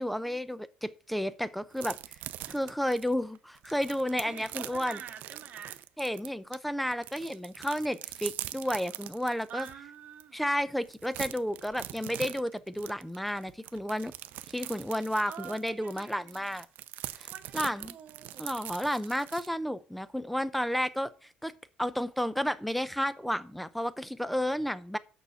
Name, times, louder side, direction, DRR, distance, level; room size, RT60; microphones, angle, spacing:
voice 1, 0.0-2.0 2.5-5.0 6.0-9.7 10.3-14.1 14.5-16.7 17.2-18.0 18.4-21.1 21.4-21.5 21.8-25.0, equal, ahead, 0.6 m, -32 dB
sound 1, 1.7-6.6 6.9-9.7 10.2-10.3 10.6-19.5, right 14 dB, 65° right, 0.6 m, -42 dB
voice 2, 4.2-5.8 9.5-10.4 15.3-16.6 17.3-18.4, right 8 dB, 45° right, 2.2 m, -46 dB
6.6 x 6.2 x 6.8 m
cardioid pair, 125°, 3 cm